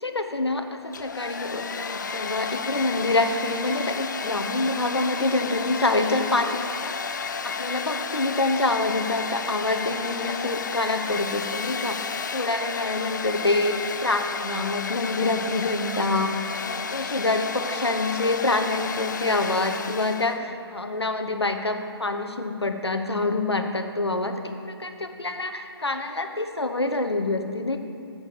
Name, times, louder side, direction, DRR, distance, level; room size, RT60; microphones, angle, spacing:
voice 1, 0.0-27.8, left 2 dB, 80° left, 6 dB, 0.9 m, -26 dB
Domestic sounds home sounds, 0.8-20.4, left 5 dB, 45° left, 0.4 m, -32 dB
9.6 x 6.6 x 6.9 m, 2.5 s
figure-of-eight pair, 140°, 14 cm